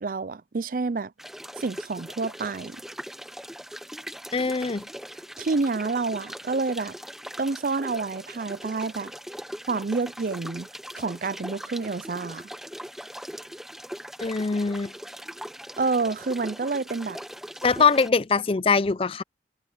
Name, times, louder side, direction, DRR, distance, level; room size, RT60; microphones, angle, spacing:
voice 1, 0.0-1.1 1.6-2.8 5.4-6.9 7.4-9.1 9.7-10.7 11.0-12.4 15.8-17.2, right 4 dB, 50° right, 0.5 m, -28 dB
sound 1, 1.2-18.1, equal, ahead, 0.9 m, -40 dB
voice 2, 4.3-4.8 14.2-14.9 17.6-19.2, left 5 dB, 30° left, 0.5 m, -22 dB
head